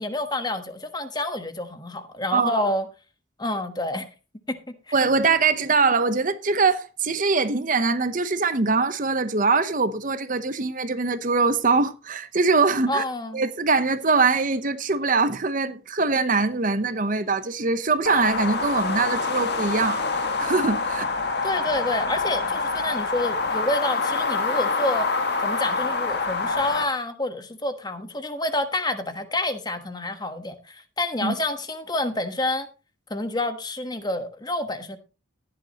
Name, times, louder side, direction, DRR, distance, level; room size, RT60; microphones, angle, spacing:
voice 1, 0.0-2.9 3.4-4.1 4.5-4.9 12.9-13.4 21.4-25.1 25.4-32.7 33.1-35.0, left 1 dB, 20° left, 1.2 m, -28 dB
voice 2, 2.3-2.7 4.9-13.0 13.3-20.0 20.4-21.1 31.2-31.3, right 4 dB, 40° right, 0.9 m, -22 dB
sound 1, 18.1-26.8, left 3 dB, 50° left, 1.9 m, -26 dB
15.5 x 10.5 x 3.0 m
head